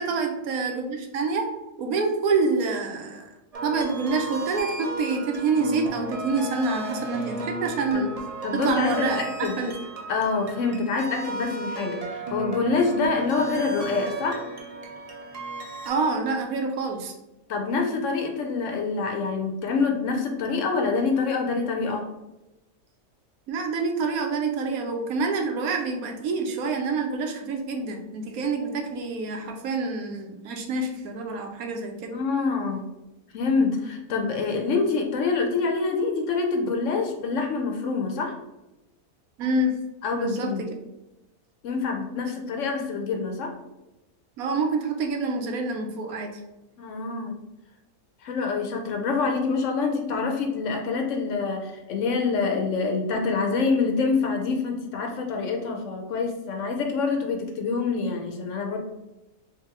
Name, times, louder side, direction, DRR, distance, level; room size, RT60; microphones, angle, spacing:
voice 1, 0.0-1.5 1.8-3.3 3.6-8.1 8.5-9.7 15.8-17.1 23.5-32.1 39.4-39.8 40.2-40.7 44.4-46.3, right 3 dB, 80° right, 4 dB, 1.1 m, -27 dB
sound 1, 3.5-15.9, right 2 dB, 40° right, 0.5 m, -35 dB
voice 2, 8.4-9.5 10.1-14.4 17.5-22.1 32.1-32.8 33.3-38.3 40.0-40.7 41.6-43.5 46.8-47.3 48.2-58.8, left 4 dB, 65° left, 3 dB, 0.9 m, -26 dB
3.3 x 2.9 x 3.6 m, 0.96 s
omnidirectional pair, 1.5 m